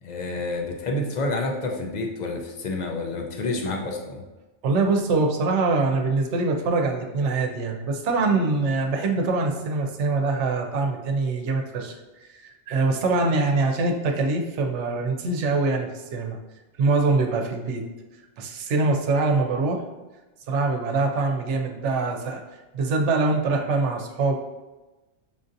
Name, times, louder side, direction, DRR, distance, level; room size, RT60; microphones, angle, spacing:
voice 1, 0.0-4.2, left 2 dB, 50° left, 1 dB, 0.5 m, -29 dB
voice 2, 4.6-11.9 12.2-16.4 16.8-17.9 18.4-19.8 20.5-22.4 22.7-24.3, right 3 dB, 85° right, 3 dB, 0.9 m, -24 dB
5.3 x 2.6 x 2.5 m, 1.1 s
omnidirectional pair, 1.2 m